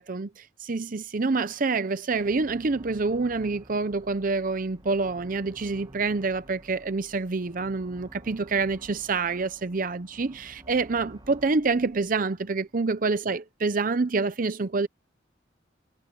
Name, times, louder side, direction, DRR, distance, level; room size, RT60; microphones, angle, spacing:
voice 1, 0.0-14.9, right 3 dB, 45° right, 0.7 m, -27 dB
sound 1, 1.5-11.5, right 1 dB, 25° right, 1.4 m, -51 dB
sound 2, 3.9-6.0 6.3-13.4, equal, 20° left, 5.2 m, -60 dB
head